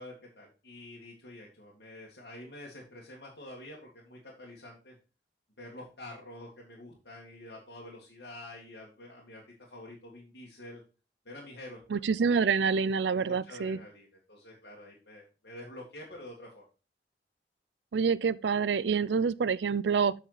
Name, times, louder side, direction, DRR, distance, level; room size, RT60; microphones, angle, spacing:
voice 1, 0.0-5.0 5.6-9.4 9.7-10.8 11.3-12.0 13.1-16.7, left 1 dB, 70° left, 2.2 m, -47 dB
voice 2, 11.9-13.8 17.9-20.1, right 5 dB, 80° right, 0.4 m, -27 dB
7.9 x 6.2 x 4.0 m
head